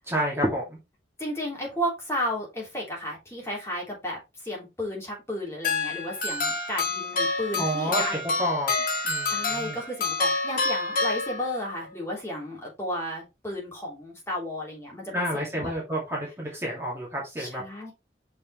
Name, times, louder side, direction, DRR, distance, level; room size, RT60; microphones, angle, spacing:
voice 1, 0.1-0.8 7.6-8.7 9.0-9.8 15.1-17.6, equal, 15° right, 2.3 m, -29 dB
voice 2, 1.2-8.2 9.2-15.7 17.4-17.9, equal, 15° left, 3.3 m, -33 dB
sound 1, 5.6-11.8, left 3 dB, 50° left, 1.7 m, -28 dB
6.3 x 5.7 x 3.1 m
head